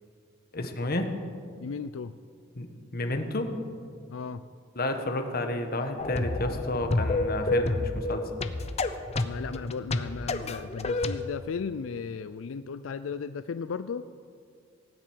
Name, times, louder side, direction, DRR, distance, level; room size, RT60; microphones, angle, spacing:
voice 1, 0.5-1.1 2.5-3.6 4.7-8.3, left 2 dB, 50° left, 6 dB, 1.3 m, -31 dB
voice 2, 1.6-2.1 4.1-4.5 9.2-14.1, left 5 dB, 85° left, 12 dB, 0.4 m, -35 dB
sound 1, 6.0-11.2, left 2 dB, 35° left, 0.7 m, -29 dB
18.0 x 7.5 x 8.8 m, 2.3 s
head